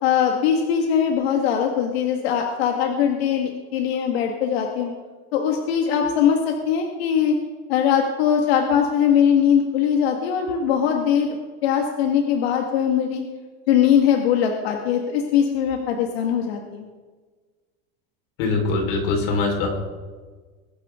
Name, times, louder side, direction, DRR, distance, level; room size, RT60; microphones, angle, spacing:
voice 1, 0.0-4.9 5.3-7.3 7.7-11.4 11.6-13.2 13.7-16.9, left 8 dB, 85° left, 2 dB, 1.8 m, -21 dB
voice 2, 18.4-19.7, left 3 dB, 55° left, 1 dB, 4.4 m, -22 dB
22.0 x 11.5 x 3.7 m, 1.4 s
supercardioid pair, 180°, 30 cm